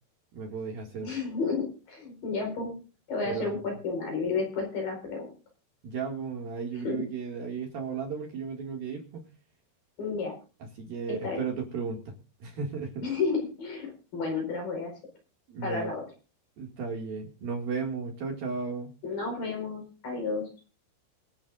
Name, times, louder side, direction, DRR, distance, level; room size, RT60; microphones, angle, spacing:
voice 1, 0.3-1.1 3.2-3.5 5.8-9.2 10.8-12.1 12.4-13.1 15.5-15.9 16.6-18.9, right 5 dB, 55° right, 1 dB, 3.4 m, -34 dB
voice 2, 1.0-2.7 3.1-5.3 6.8-7.0 10.0-10.3 11.2-11.4 13.0-14.9 15.6-16.0 19.0-20.4, left 4 dB, 45° left, 2 dB, 6.1 m, -31 dB
25.5 x 9.6 x 2.5 m, 0.35 s
omnidirectional pair, 5.6 m